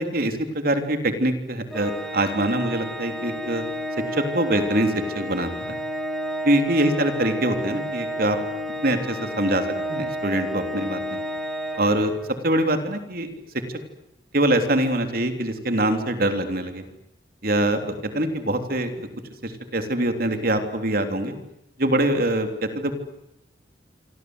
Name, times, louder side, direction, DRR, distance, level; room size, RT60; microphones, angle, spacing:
voice 1, 0.0-3.6 4.1-5.8 6.5-8.4 8.8-9.6 9.9-11.2 11.8-12.1 12.4-13.3 14.3-16.8 17.4-19.1 19.4-21.3 21.8-22.9, right 1 dB, 55° right, 7 dB, 3.5 m, -24 dB
Organ, 1.7-12.5, equal, ahead, 2.5 m, -31 dB
28.0 x 25.0 x 8.1 m, 0.86 s
head